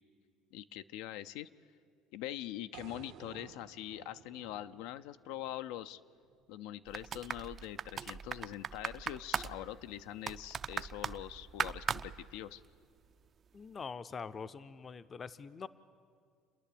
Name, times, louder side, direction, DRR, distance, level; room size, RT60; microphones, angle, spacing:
voice 1, 0.5-1.5 2.1-6.0 6.5-12.6, left 13 dB, 80° left, 12 dB, 0.5 m, -43 dB
sound 1, 2.7-6.9, right 10 dB, 65° right, 0.8 m, -55 dB
sound 2, 6.9-12.8 13.0-13.1, right 7 dB, 30° right, 0.4 m, -40 dB
voice 2, 13.5-15.7, left 5 dB, 25° left, 13 dB, 0.5 m, -44 dB
29.0 x 10.5 x 8.5 m, 2.2 s
cardioid pair, 145°, 0 cm